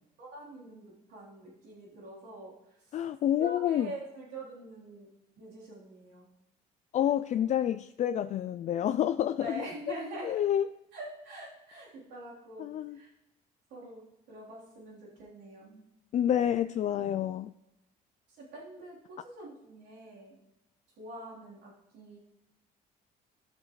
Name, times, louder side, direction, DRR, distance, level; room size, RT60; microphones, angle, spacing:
voice 1, 0.2-2.5 3.4-5.1 5.4-6.3 9.4-10.4 10.9-13.1 13.7-15.8 18.4-20.4 21.0-22.2, right 1 dB, 85° right, -6 dB, 3.6 m, -45 dB
voice 2, 2.9-3.9 6.9-9.6 10.2-10.7 12.6-13.0 16.1-17.5, left 10 dB, 45° left, 10 dB, 0.4 m, -28 dB
15.5 x 6.5 x 3.1 m, 0.91 s
cardioid pair, 110°, 17 cm